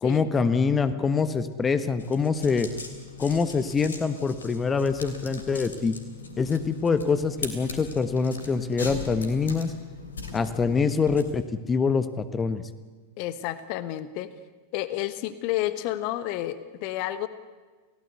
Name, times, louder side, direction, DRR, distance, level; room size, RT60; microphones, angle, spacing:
voice 1, 0.0-2.7 3.2-5.9 6.4-9.7 10.3-12.6, left 5 dB, 20° left, 12 dB, 1.2 m, -25 dB
sound 1, 2.0-11.2, left 4 dB, 70° left, 3.2 m, -40 dB
voice 2, 13.2-14.3 14.7-17.3, left 14 dB, 45° left, 14 dB, 1.2 m, -30 dB
29.0 x 16.5 x 8.1 m, 1.4 s
figure-of-eight pair, 90°, 0 cm